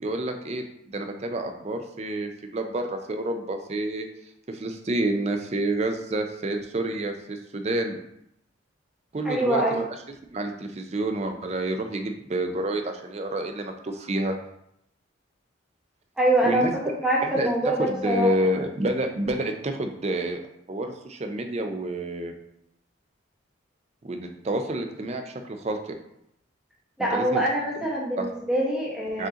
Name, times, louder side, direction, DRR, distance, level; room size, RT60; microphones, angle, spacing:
voice 1, 0.0-4.1 4.5-8.0 9.1-9.9 10.3-14.3 16.4-16.7 17.2-20.4 20.7-22.3 24.0-25.9 27.1-27.4 28.2-28.3 29.2-29.3, right 1 dB, 30° right, 5 dB, 0.4 m, -29 dB
voice 2, 9.2-9.8 16.2-16.7 17.0-18.3 27.0-29.3, right 1 dB, 5° right, -5 dB, 0.9 m, -24 dB
5.0 x 2.7 x 3.7 m, 0.77 s
head